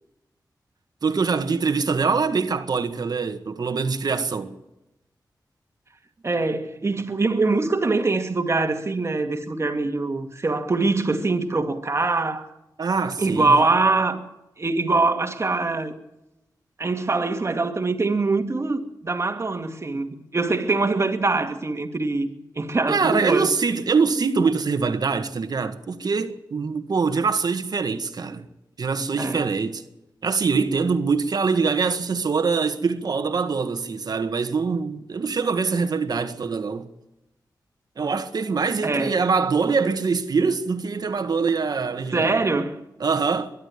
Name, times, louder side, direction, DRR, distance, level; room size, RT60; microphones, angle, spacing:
voice 1, 1.0-4.6 12.8-13.6 22.9-28.5 28.8-29.8 30.2-36.9 38.0-42.4 43.0-43.5, right 5 dB, 60° right, 1.7 m, -24 dB
voice 2, 6.2-12.5 13.2-14.3 14.6-15.9 16.8-22.3 22.6-23.5 29.2-29.5 38.8-39.2 42.1-42.8, right 3 dB, 40° right, 2.3 m, -23 dB
23.0 x 11.5 x 9.9 m
wide cardioid pair, 80°, 8 cm